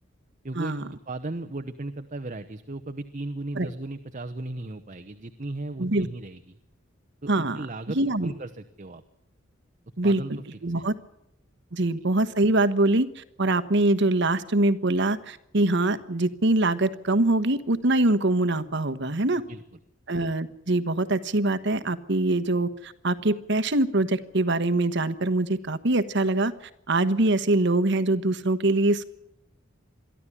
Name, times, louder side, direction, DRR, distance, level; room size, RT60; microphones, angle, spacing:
voice 1, 0.4-6.6 7.2-9.0 10.0-10.8 19.3-19.6, right 2 dB, 40° right, 9 dB, 0.9 m, -36 dB
voice 2, 7.3-7.6 7.9-8.3 10.0-10.9 11.7-19.4 20.1-26.5 26.9-29.0, right 2 dB, 60° right, 11 dB, 1.2 m, -24 dB
22.5 x 14.0 x 9.9 m, 0.84 s
head